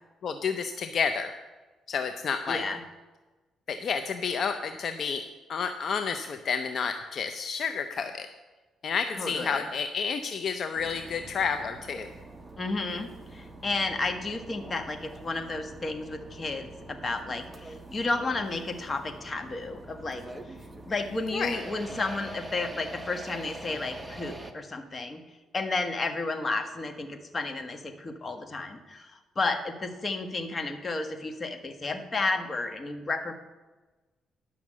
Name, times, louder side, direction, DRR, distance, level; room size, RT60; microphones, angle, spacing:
voice 1, 0.2-1.3 1.9-2.6 3.7-5.2 5.5-8.3 8.8-12.1 21.3-21.6, left 6 dB, 55° left, 7 dB, 0.6 m, -30 dB
voice 2, 2.5-2.8 9.2-9.7 12.6-20.2 20.9-25.2 25.5-33.3, left 3 dB, 30° left, 7 dB, 1.2 m, -32 dB
sound 1, 10.7-24.5, right 2 dB, 10° right, 1.0 m, -44 dB
11.0 x 5.9 x 7.4 m, 1.2 s
cardioid pair, 90°, 0 cm